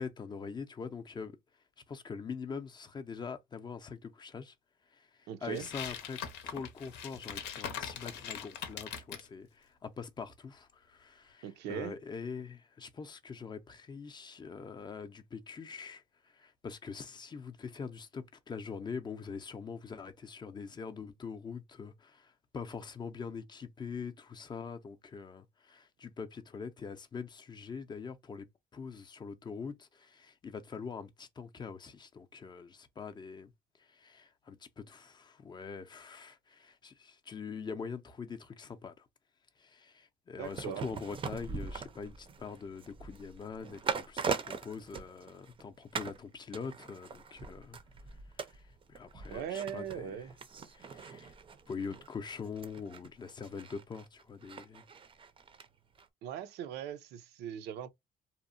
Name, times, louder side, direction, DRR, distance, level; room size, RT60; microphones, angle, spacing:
voice 1, 0.0-1.3 1.9-4.5 4.9-16.0 16.3-28.5 28.7-33.5 33.9-38.9 39.6-47.8 48.4-48.6 48.9-50.2 50.7-51.3 51.7-54.8, left 5 dB, 25° left, 0.4 m, -43 dB
voice 2, 5.3-5.7 11.4-11.9 40.4-40.9 49.3-50.3 56.2-57.9, right 9 dB, 80° right, 0.5 m, -39 dB
sound 1, 5.5-9.3, left 8 dB, 90° left, 0.7 m, -41 dB
sound 2, 40.4-45.6 45.9-46.2 46.5-55.7 56.0-56.1, right 5 dB, 30° right, 0.5 m, -41 dB
2.8 x 2.0 x 2.4 m
cardioid pair, 110°, 17 cm